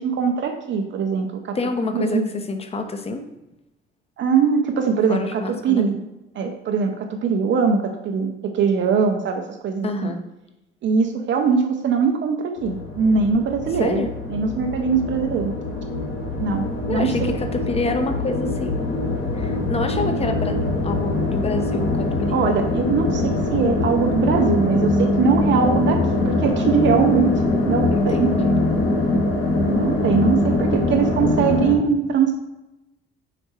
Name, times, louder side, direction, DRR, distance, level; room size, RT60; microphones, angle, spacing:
voice 1, 0.0-1.6 1.9-2.4 4.2-6.0 6.3-10.1 10.8-14.0 14.3-15.5 16.4-17.3 22.3-28.3 29.6-32.3, right 5 dB, 40° right, 4 dB, 0.6 m, -21 dB
voice 2, 1.5-3.2 5.1-5.9 9.8-10.2 13.7-14.1 16.9-19.0 19.3-20.6 20.8-22.4 27.9-28.5, left 3 dB, 20° left, 6 dB, 0.7 m, -27 dB
sound 1, 12.6-31.7, left 2 dB, 45° left, 1.2 m, -23 dB
4.9 x 4.3 x 4.4 m, 0.97 s
figure-of-eight pair, 50°, 30 cm